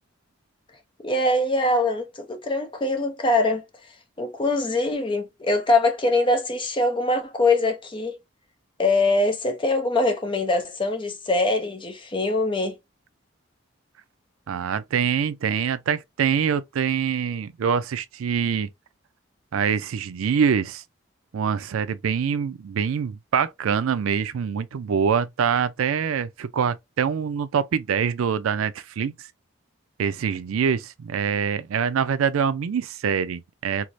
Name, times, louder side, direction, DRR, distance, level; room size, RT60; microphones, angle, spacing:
voice 1, 1.0-3.6 4.2-8.2 8.8-12.8, left 2 dB, 25° left, 0.6 m, -23 dB
voice 2, 14.5-18.7 19.5-20.8 21.3-29.1 30.0-33.9, right 7 dB, 75° right, 0.4 m, -24 dB
4.6 x 2.0 x 2.5 m
head